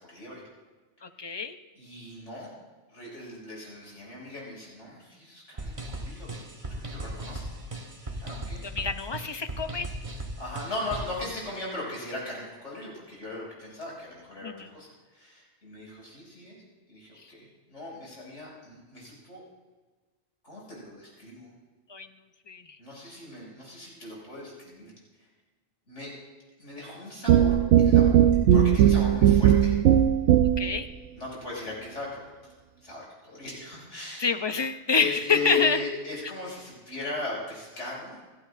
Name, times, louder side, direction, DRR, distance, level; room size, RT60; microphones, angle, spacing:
voice 1, 0.1-0.4 1.2-1.4 1.7-2.5 2.9-7.5 8.1-8.6 10.4-16.6 16.9-19.4 20.4-21.5 22.8-24.9 25.2-25.3 25.9-26.1 26.6-28.2 28.5-29.7 31.2-32.5 32.8-34.3 34.9-38.2, left 3 dB, 90° left, -4 dB, 6.2 m, -37 dB
voice 2, 1.0-1.6 8.7-9.9 14.4-14.7 21.9-22.1 22.5-22.6 30.6-30.9 34.2-35.8, left 5 dB, 30° left, 9 dB, 0.5 m, -27 dB
sound 1, 5.6-11.2, right 1 dB, 30° right, 1.1 m, -37 dB
sound 2, 27.3-30.8, right 10 dB, 85° right, 0.9 m, -19 dB
28.0 x 11.5 x 2.5 m, 1.3 s
omnidirectional pair, 1.2 m